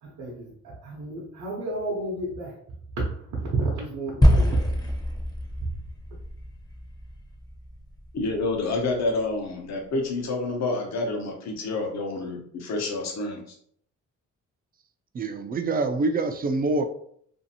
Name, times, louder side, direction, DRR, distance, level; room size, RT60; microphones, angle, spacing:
voice 1, 0.0-2.6 3.0-4.8, right 2 dB, 65° right, 0.7 m, -31 dB
sound 1, 4.2-8.6, equal, 15° left, 0.7 m, -25 dB
voice 2, 8.1-13.5, left 2 dB, 60° left, 0.9 m, -28 dB
voice 3, 15.1-16.8, right 3 dB, 30° right, 0.4 m, -25 dB
2.6 x 2.5 x 2.7 m
cardioid pair, 90°, 30 cm